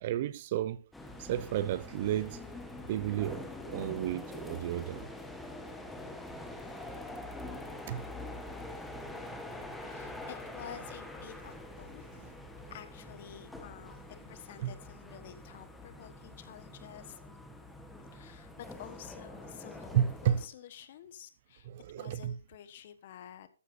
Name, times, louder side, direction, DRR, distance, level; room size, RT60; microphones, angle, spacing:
voice 1, 0.0-0.8 1.2-2.4 2.9-5.1 7.9-8.0 12.2-12.3 14.6-14.7 19.9-20.4 21.7-22.3, right 11 dB, 40° right, 0.6 m, -32 dB
sound 1, 0.9-20.5, left 2 dB, 5° left, 1.2 m, -45 dB
voice 2, 9.8-12.2 12.7-17.2 18.1-23.5, left 10 dB, 40° left, 1.3 m, -50 dB
13.5 x 12.0 x 2.7 m
hypercardioid pair, 145°, 0 cm